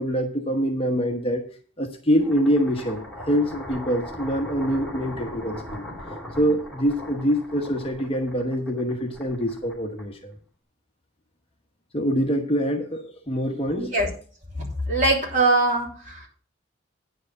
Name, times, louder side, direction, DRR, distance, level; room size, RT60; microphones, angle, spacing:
voice 1, 0.0-1.4 1.8-5.9 6.4-10.3 11.9-13.9, equal, 30° left, 4 dB, 1.1 m, -25 dB
sound 1, 2.1-10.4, left 1 dB, ahead, 3.1 m, -39 dB
voice 2, 13.8-14.1 14.9-16.3, right 2 dB, 40° right, -2 dB, 3.3 m, -22 dB
9.7 x 4.9 x 7.7 m, 0.43 s
head